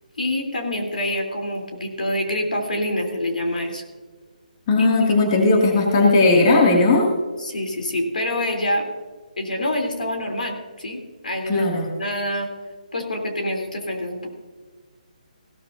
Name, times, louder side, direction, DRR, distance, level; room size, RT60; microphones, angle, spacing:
voice 1, 0.2-3.8 4.8-5.2 7.4-8.9 9.4-12.5 12.9-14.3, left 1 dB, 80° left, 2 dB, 3.2 m, -26 dB
voice 2, 4.7-7.1 11.5-11.9, left 3 dB, 30° left, 0 dB, 2.1 m, -17 dB
16.5 x 13.0 x 2.6 m, 1.4 s
figure-of-eight pair, 155°, 4 cm